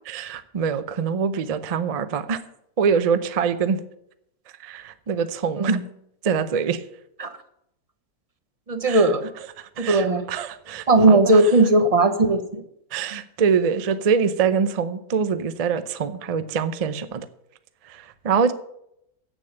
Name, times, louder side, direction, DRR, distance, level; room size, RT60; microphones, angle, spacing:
voice 1, 0.1-2.4 2.8-3.8 4.6-5.8 6.2-6.8 8.9-9.1 9.6-11.4 12.9-17.3 17.9-18.5, right 6 dB, 50° right, 12 dB, 0.4 m, -24 dB
voice 2, 8.7-9.3 9.8-10.2 10.9-12.6 13.1-13.2, right 2 dB, 30° right, 9 dB, 0.8 m, -18 dB
8.7 x 7.2 x 8.7 m, 0.75 s
omnidirectional pair, 1.6 m